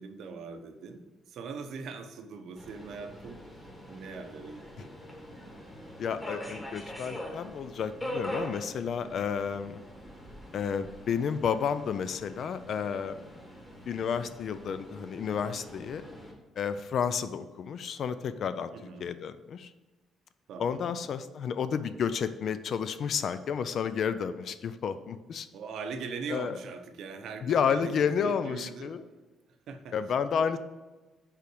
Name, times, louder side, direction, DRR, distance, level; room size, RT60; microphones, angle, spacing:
voice 1, 0.0-3.4 3.9-4.9 18.7-19.1 20.5-21.0 25.5-29.0 29.7-29.9, right 5 dB, 60° right, 6 dB, 0.7 m, -41 dB
Subway metro underground, 2.6-16.3, equal, 10° left, 1.2 m, -43 dB
voice 2, 6.0-9.8 10.5-13.3 13.9-16.0 16.6-18.7 19.0-19.7 20.6-25.5 26.3-26.6 27.4-29.0 29.9-30.6, left 7 dB, 45° left, 12 dB, 0.3 m, -31 dB
5.7 x 5.0 x 6.2 m, 1.2 s
cardioid pair, 180°, 0 cm